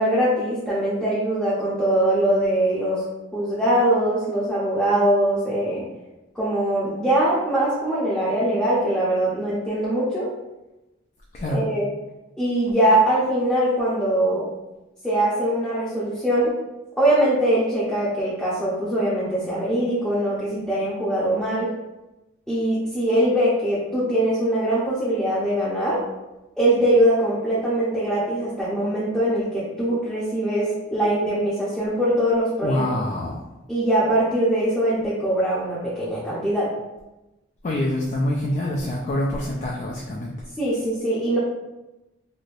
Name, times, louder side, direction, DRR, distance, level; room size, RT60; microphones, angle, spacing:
voice 1, 0.0-3.0 3.3-5.8 6.4-10.3 11.4-11.9 12.4-14.5 15.0-16.5 17.0-21.7 22.5-26.0 26.6-32.8 33.7-36.7 40.6-41.4, right 1 dB, ahead, -11 dB, 0.6 m, -22 dB
voice 2, 32.6-33.4 37.6-40.5, left 1 dB, 35° left, -2 dB, 0.3 m, -25 dB
3.2 x 2.7 x 2.5 m, 1.0 s
head